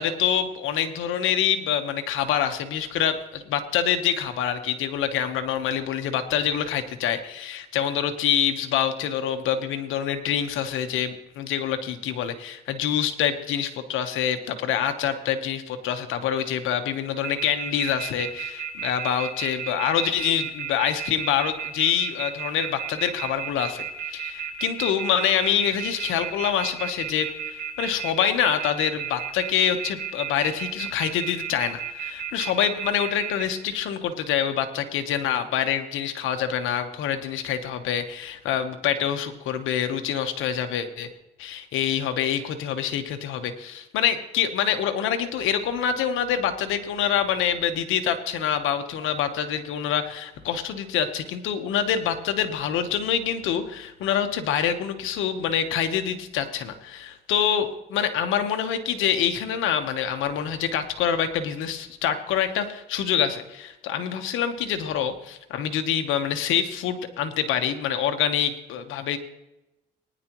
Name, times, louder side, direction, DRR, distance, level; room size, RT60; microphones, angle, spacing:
voice 1, 0.0-23.8 24.1-41.1 41.4-69.2, left 9 dB, 90° left, 8 dB, 1.1 m, -26 dB
sound 1, 17.2-33.4, right 9 dB, 70° right, 4.6 m, -32 dB
19.5 x 10.0 x 3.0 m, 0.95 s
cardioid pair, 90°, 20 cm